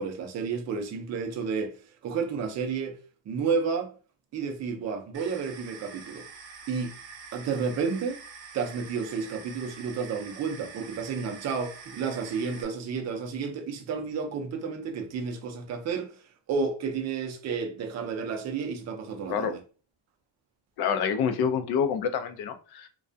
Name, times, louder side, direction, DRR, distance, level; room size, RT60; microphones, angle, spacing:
voice 1, 0.0-1.7 2.0-3.0 3.3-3.9 4.3-6.3 6.7-6.9 7.3-8.2 8.5-16.1 16.5-19.6, right 5 dB, 40° right, 0.5 m, -31 dB
sound 1, 5.1-12.6, right 5 dB, 70° right, 0.8 m, -46 dB
voice 2, 20.8-22.9, left 7 dB, 55° left, 0.5 m, -27 dB
2.3 x 2.2 x 2.5 m
cardioid pair, 125°, 46 cm